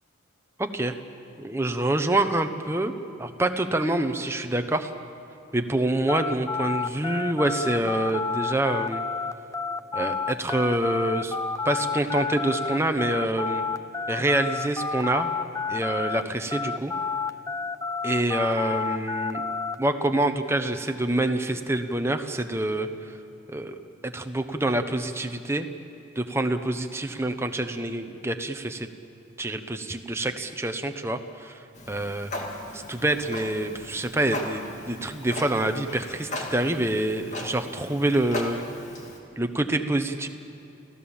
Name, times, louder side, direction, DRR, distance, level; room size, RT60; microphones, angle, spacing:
voice 1, 0.6-1.0 1.4-2.9 3.2-4.9 5.5-9.0 9.9-11.4 11.6-13.6 14.1-15.3 15.7-16.9 18.0-19.4 19.8-23.2 23.5-23.8 24.0-25.7 26.2-28.9 29.4-31.6 31.9-32.3 32.7-38.6 39.4-40.3, right 1 dB, 10° right, 6 dB, 0.9 m, -26 dB
sound 1, 6.1-16.2 16.5-19.8, left 5 dB, 15° left, 0.5 m, -30 dB
Clock, 31.7-39.2, left 1 dB, 35° left, 2.3 m, -37 dB
29.0 x 15.5 x 7.3 m, 2.7 s
head